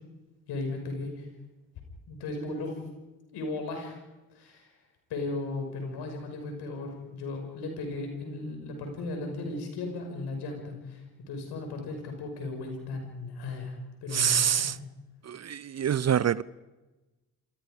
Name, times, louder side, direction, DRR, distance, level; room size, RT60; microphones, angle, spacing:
voice 1, 0.5-1.3 2.1-2.8 3.3-4.0 4.3-4.7 5.1-14.8, left 2 dB, 70° left, 5.8 m, -36 dB
voice 2, 14.1-14.8 15.3-16.4, right 8 dB, 40° right, 0.7 m, -26 dB
27.5 x 22.0 x 5.1 m
hypercardioid pair, 45°, 42 cm